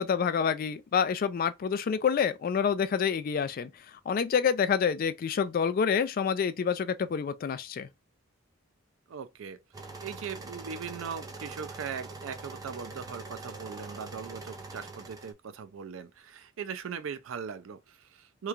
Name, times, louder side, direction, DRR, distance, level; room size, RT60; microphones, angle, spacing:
voice 1, 0.0-3.7 4.1-7.9, left 7 dB, 45° left, 0.3 m, -27 dB
voice 2, 9.1-9.6 10.0-18.5, right 6 dB, 75° right, 0.4 m, -39 dB
sound 1, 9.7-15.3, right 3 dB, 20° right, 0.4 m, -43 dB
3.0 x 2.2 x 2.4 m
head